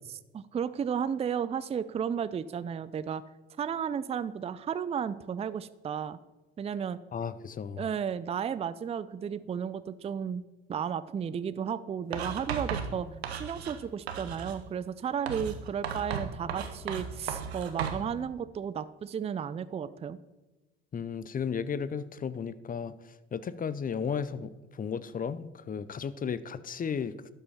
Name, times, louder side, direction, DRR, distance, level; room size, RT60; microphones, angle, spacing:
voice 1, 0.3-3.2 3.6-6.2 6.6-7.0 7.8-10.4 10.7-13.1 13.4-20.2, right 7 dB, 20° right, 16 dB, 0.4 m, -33 dB
voice 2, 7.1-7.8 20.9-27.2, left 6 dB, 25° left, 16 dB, 0.6 m, -34 dB
Writing, 12.1-13.8 14.1-14.6 15.3-18.0, right 7 dB, 85° right, 0.9 m, -35 dB
12.0 x 5.5 x 5.7 m, 1.1 s
hypercardioid pair, 55°, 31 cm